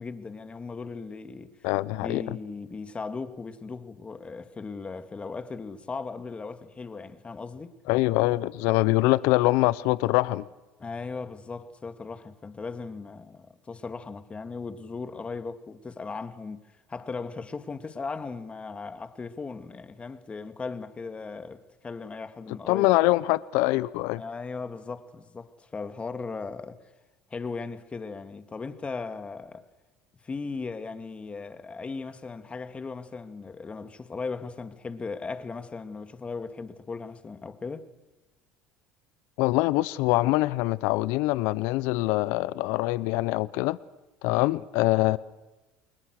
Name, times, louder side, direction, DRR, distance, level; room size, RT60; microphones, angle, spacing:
voice 1, 0.0-1.7 2.0-7.7 10.8-16.6 16.9-22.9 24.2-26.8 27.3-29.7 30.2-37.9, left 4 dB, 25° left, 2.4 m, -37 dB
voice 2, 1.6-2.4 7.9-10.4 22.7-24.2 39.4-43.8 44.2-45.2, left 19 dB, 75° left, 0.8 m, -24 dB
29.5 x 21.5 x 6.6 m
supercardioid pair, 90°, 5 cm